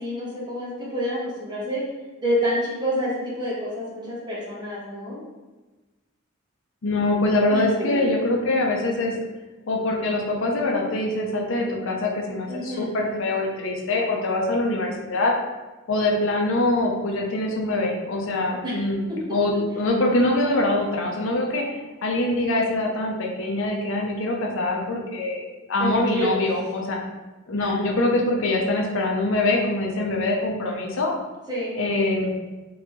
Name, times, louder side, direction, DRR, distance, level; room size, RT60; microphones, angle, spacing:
voice 1, 0.0-1.8 2.2-5.2 7.5-7.6 12.5-12.9 18.6-18.8 25.8-26.3 27.6-27.8 31.5-31.8, equal, 20° right, -6 dB, 1.0 m, -28 dB
voice 2, 6.8-9.1 9.7-15.3 15.9-21.6 22.0-27.0 27.5-31.1 31.7-32.3, left 2 dB, 65° left, 0 dB, 0.6 m, -24 dB
3.8 x 2.8 x 3.0 m, 1.2 s
head